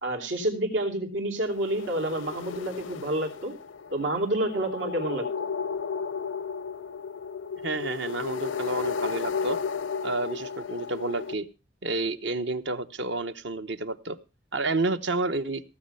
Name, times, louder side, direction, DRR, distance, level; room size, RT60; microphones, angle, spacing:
voice 1, 0.0-3.5 3.9-5.2, right 1 dB, 85° right, 4 dB, 3.3 m, -29 dB
sound 1, 1.4-11.3, left 6 dB, 80° left, 0.5 m, -34 dB
voice 2, 7.6-9.6 10.0-11.5 11.8-14.2 14.5-15.6, right 2 dB, 65° right, 11 dB, 1.0 m, -30 dB
16.5 x 7.6 x 5.6 m, 0.31 s
head